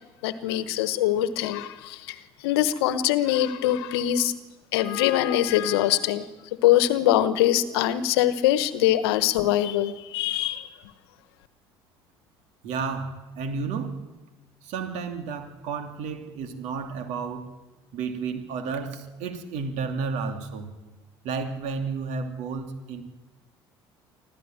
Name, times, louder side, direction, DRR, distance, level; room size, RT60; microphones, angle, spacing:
voice 1, 0.2-2.2 2.4-4.3 4.7-6.2 6.6-10.7, left 13 dB, 75° left, 14 dB, 1.1 m, -23 dB
voice 2, 12.6-14.0 14.6-17.5 17.9-20.7 21.2-23.0, right 5 dB, 65° right, 6 dB, 2.7 m, -32 dB
25.0 x 14.5 x 8.9 m, 1.2 s
hypercardioid pair, 65°, 13 cm